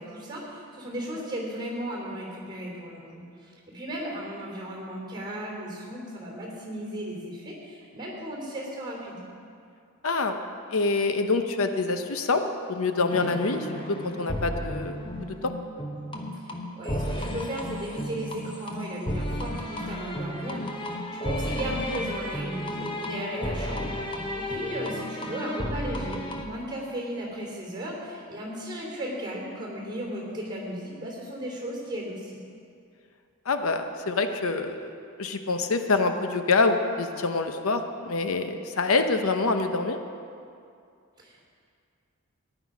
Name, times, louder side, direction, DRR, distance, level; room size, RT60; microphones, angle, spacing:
voice 1, 0.0-9.3 16.7-23.9 24.3-32.4 41.2-41.4, right 1 dB, 20° right, -2 dB, 3.2 m, -35 dB
voice 2, 10.0-10.4 10.7-12.4 12.7-15.0 15.4-15.5 33.5-34.9 35.2-40.0, left 3 dB, 80° left, 7 dB, 0.8 m, -26 dB
sound 1, 13.1-26.4, left 1 dB, 25° left, 0.9 m, -33 dB
15.5 x 10.0 x 5.1 m, 2.4 s
head